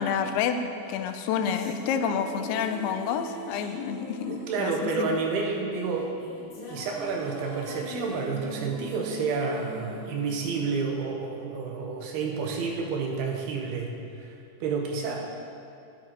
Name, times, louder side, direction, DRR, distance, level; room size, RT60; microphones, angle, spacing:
voice 1, 0.0-5.1, left 7 dB, 85° left, 8 dB, 2.5 m, -29 dB
sound 1, 1.0-11.4, equal, 55° left, 1.6 m, -42 dB
voice 2, 4.3-6.2 6.7-15.2, right 4 dB, 85° right, 0 dB, 3.0 m, -30 dB
11.5 x 8.5 x 4.5 m, 2.5 s
omnidirectional pair, 4.6 m